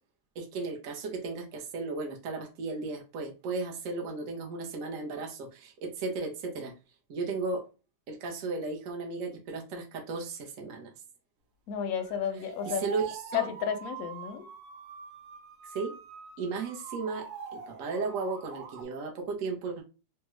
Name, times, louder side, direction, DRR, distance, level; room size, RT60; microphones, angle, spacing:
voice 1, 0.4-6.7 7.1-7.6 8.1-10.9 12.7-13.5 15.6-15.9 16.4-17.3 17.5-19.8, right 4 dB, 60° right, 0.9 m, -35 dB
voice 2, 11.7-12.9 13.3-14.5, left 8 dB, 70° left, 0.8 m, -32 dB
sound 1, 12.0-18.8, right 5 dB, 85° right, 1.4 m, -44 dB
3.4 x 2.2 x 3.0 m
omnidirectional pair, 1.9 m